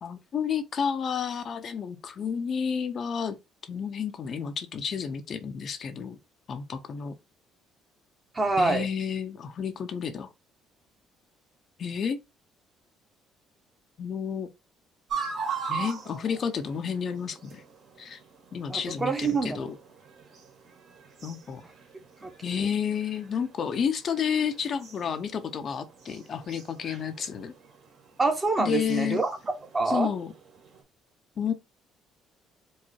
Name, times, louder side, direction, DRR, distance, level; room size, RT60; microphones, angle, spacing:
voice 1, 0.0-3.4 3.7-6.2 6.5-7.1 8.6-10.3 11.8-12.2 14.0-14.5 15.7-17.6 18.0-18.2 18.5-19.8 21.2-21.6 22.4-27.5 28.6-29.2 29.9-30.3 31.4-31.5, left 7 dB, 50° left, 0.7 m, -31 dB
voice 2, 8.3-8.9 18.7-19.7 22.2-22.7 28.2-30.1, right 3 dB, 25° right, 1.2 m, -27 dB
sound 1, 15.1-30.8, right 6 dB, 60° right, 1.8 m, -42 dB
4.7 x 2.1 x 4.3 m
supercardioid pair, 90°, 0 cm